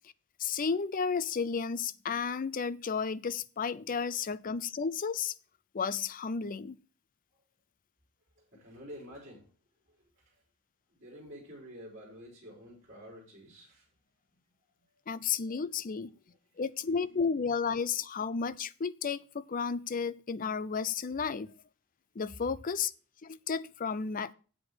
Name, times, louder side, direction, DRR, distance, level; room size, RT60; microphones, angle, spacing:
voice 1, 0.4-5.3 5.7-6.8 15.1-16.1 16.6-21.6 22.2-22.9 23.2-24.3, left 5 dB, 40° left, 0.5 m, -32 dB
voice 2, 8.4-9.5 9.9-10.4 10.9-13.9 14.8-14.9 16.5-16.6 22.4-22.5, equal, 40° right, 4.3 m, -49 dB
8.5 x 7.7 x 4.6 m
head